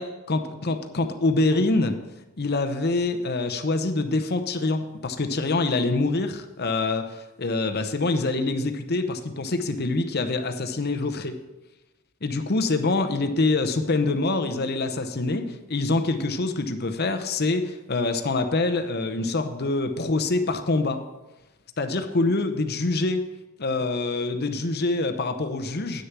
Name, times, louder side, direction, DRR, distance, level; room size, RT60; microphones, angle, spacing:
voice 1, 0.3-2.0 2.4-11.4 12.2-21.0 21.8-23.2 23.6-26.0, left 2 dB, 50° left, 8 dB, 0.8 m, -25 dB
9.4 x 6.6 x 6.1 m, 1.0 s
head